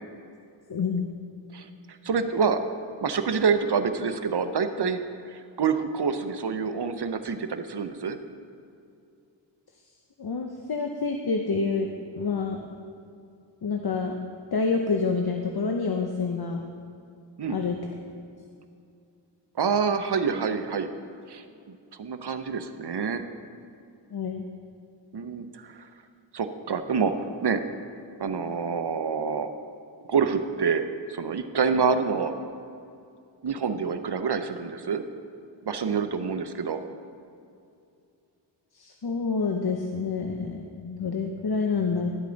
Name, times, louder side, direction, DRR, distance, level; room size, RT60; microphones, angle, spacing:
voice 1, 0.7-1.0 10.2-11.9 12.2-12.6 13.6-14.2 14.5-16.7 17.5-17.8 24.1-24.5 38.7-42.1, left 4 dB, 55° left, 3 dB, 0.7 m, -27 dB
voice 2, 1.5-2.6 3.0-5.0 5.3-8.2 17.4-17.6 19.6-20.9 21.3-23.2 25.1-25.9 26.3-27.1 27.4-27.6 28.2-29.5 30.1-30.8 31.1-32.4 33.4-35.0 35.7-36.8, right 5 dB, 60° right, 9 dB, 0.7 m, -27 dB
12.0 x 8.2 x 4.0 m, 2.5 s
wide cardioid pair, 45°, 45 cm